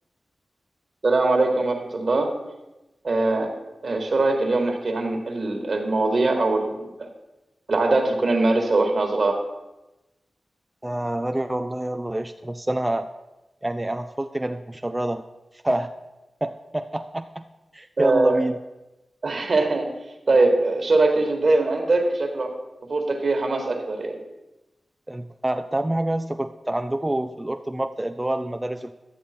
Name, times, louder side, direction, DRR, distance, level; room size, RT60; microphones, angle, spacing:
voice 1, 1.0-2.3 3.0-3.5 3.8-6.7 7.0-7.1 7.7-9.4 18.0-18.4 19.2-19.9 20.3-22.5 22.9-24.2, right 2 dB, 60° right, 3 dB, 1.6 m, -21 dB
voice 2, 10.8-13.1 13.6-15.2 15.6-15.9 16.4-17.4 17.7-18.6 25.1-28.9, right 1 dB, 20° right, 7 dB, 0.4 m, -27 dB
11.0 x 7.0 x 4.4 m, 1.0 s
cardioid pair, 45°, 0 cm